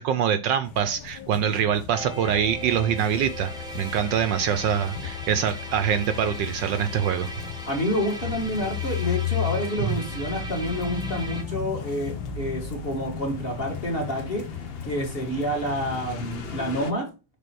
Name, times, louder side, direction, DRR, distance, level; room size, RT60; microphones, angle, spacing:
voice 1, 0.0-7.3, right 8 dB, 75° right, 11 dB, 1.2 m, -24 dB
sound 1, 0.6-16.8, left 8 dB, 75° left, 1.9 m, -35 dB
sound 2, 1.9-11.4, right 1 dB, 5° right, 0.9 m, -39 dB
sound 3, 5.4-16.9, left 6 dB, 50° left, 0.7 m, -45 dB
voice 2, 7.7-14.5 14.8-17.1, equal, 30° left, 0 dB, 2.2 m, -28 dB
6.7 x 4.1 x 6.1 m, 0.30 s
omnidirectional pair, 2.2 m